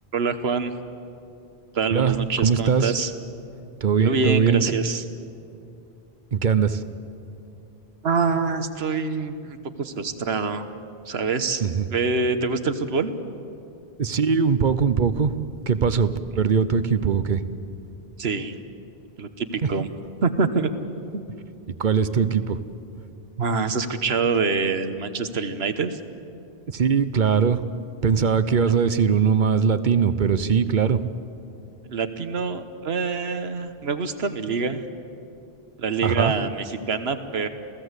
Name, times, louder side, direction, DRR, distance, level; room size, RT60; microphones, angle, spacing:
voice 1, 0.1-0.7 1.7-3.1 4.0-5.0 8.0-10.6 11.1-11.6 11.9-13.1 18.2-18.6 19.2-19.9 20.2-20.7 21.1-21.2 23.4-26.0 28.6-28.7 31.8-34.8 35.8-37.5, right 4 dB, 75° right, 10 dB, 1.4 m, -25 dB
voice 2, 2.4-2.9 3.8-4.6 6.3-6.8 11.6-11.9 14.0-15.3 15.7-17.4 19.6-19.7 21.8-22.6 26.7-27.6 28.0-31.0 36.0-36.3, right 6 dB, 50° right, 13 dB, 0.9 m, -21 dB
28.0 x 16.5 x 8.1 m, 2.7 s
omnidirectional pair, 1.1 m